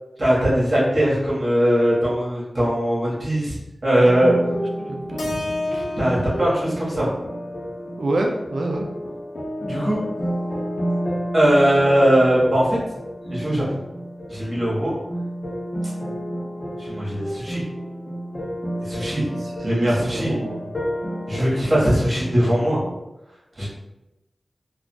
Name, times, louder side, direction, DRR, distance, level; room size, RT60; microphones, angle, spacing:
voice 1, 0.2-3.6 3.8-4.3 5.2-5.4 6.0-7.1 9.7-10.0 11.3-12.8 13.3-13.6 14.3-14.9 16.8-17.6 18.8-19.2 19.6-20.3 21.3-22.8 23.6-23.7, equal, 50° right, -7 dB, 1.5 m, -20 dB
sound 1, 4.0-23.0, equal, 40° left, 0.7 m, -31 dB
voice 2, 4.9-5.4 5.7-5.9 8.0-9.0 19.4-20.6, right 2 dB, 80° right, 2 dB, 0.4 m, -27 dB
Keyboard (musical), 5.2-9.4, left 2 dB, 85° left, 0.4 m, -32 dB
3.7 x 2.4 x 2.3 m, 0.95 s
wide cardioid pair, 90°, 0 cm